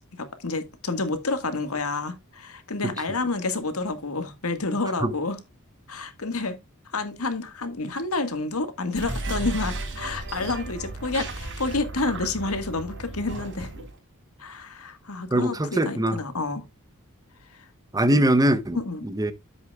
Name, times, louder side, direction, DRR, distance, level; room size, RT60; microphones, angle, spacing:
voice 1, 0.2-5.4 5.9-6.6 6.9-13.7 14.4-16.6 17.5-17.7 18.8-19.0, left 3 dB, 75° left, 1.8 m, -29 dB
sound 1, 8.9-13.9, right 2 dB, 55° right, 4.2 m, -34 dB
voice 2, 15.3-16.2 17.9-18.8 19.0-19.3, right 1 dB, 15° right, 0.9 m, -22 dB
10.5 x 8.1 x 2.4 m
head